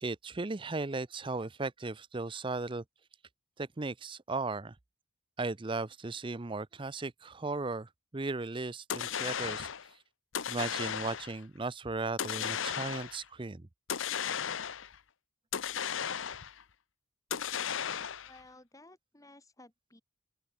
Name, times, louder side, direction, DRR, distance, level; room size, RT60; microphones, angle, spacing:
voice 1, 0.0-2.8 3.6-4.7 5.4-9.7 10.5-13.7, right 3 dB, 25° right, 0.6 m, -36 dB
sound 1, 8.9-9.9 10.3-11.4 12.2-13.2 13.9-15.0 15.5-16.6 17.3-18.4, left 8 dB, 60° left, 0.7 m, -35 dB
voice 2, 18.2-20.0, left 2 dB, 15° left, 2.9 m, -56 dB
open air
head